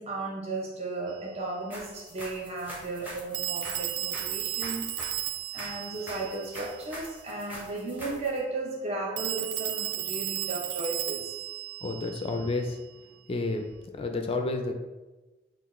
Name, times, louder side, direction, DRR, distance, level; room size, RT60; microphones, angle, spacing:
voice 1, 0.0-5.0 5.5-11.2, right 2 dB, 35° right, -3 dB, 0.7 m, -35 dB
Telephone, 1.1-1.2 3.3-7.0 9.2-12.9, right 13 dB, 70° right, 0.3 m, -34 dB
sound 1, 1.7-8.4, equal, 10° right, 1.0 m, -43 dB
voice 2, 11.8-12.8 13.3-13.7 14.0-14.8, left 2 dB, 30° left, 4 dB, 0.4 m, -30 dB
5.9 x 2.4 x 3.1 m, 1.1 s
head